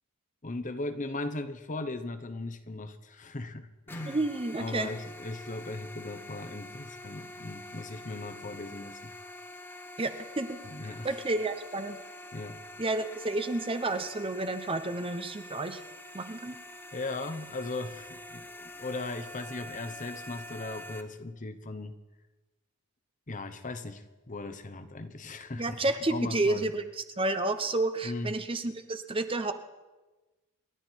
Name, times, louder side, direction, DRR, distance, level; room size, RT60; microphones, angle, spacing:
voice 1, 0.4-4.2 4.6-9.1 10.6-11.1 12.3-12.6 16.9-21.9 23.3-25.8 26.1-26.7 28.0-28.3, left 2 dB, 35° left, 10 dB, 1.0 m, -38 dB
sound 1, 3.9-21.0, left 1 dB, 10° left, 0.9 m, -46 dB
voice 2, 4.1-4.9 10.0-12.0 12.8-15.8 16.1-16.6 25.6-29.5, right 2 dB, 25° right, 9 dB, 0.7 m, -31 dB
28.0 x 11.5 x 4.5 m, 1.2 s
head